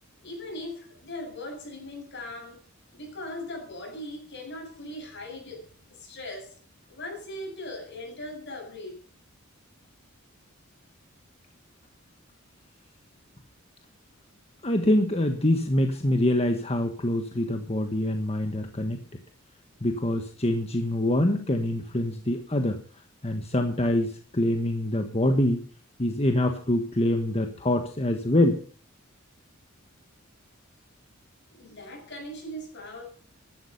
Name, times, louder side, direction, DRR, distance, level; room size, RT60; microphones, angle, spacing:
voice 1, 0.2-2.6 2.9-6.5 6.9-9.0 31.5-33.1, left 1 dB, 55° left, 7.5 m, -39 dB
voice 2, 14.6-19.0 19.8-22.8 23.2-25.6 26.0-28.6, left 1 dB, 30° left, 1.4 m, -25 dB
15.5 x 12.0 x 5.5 m
head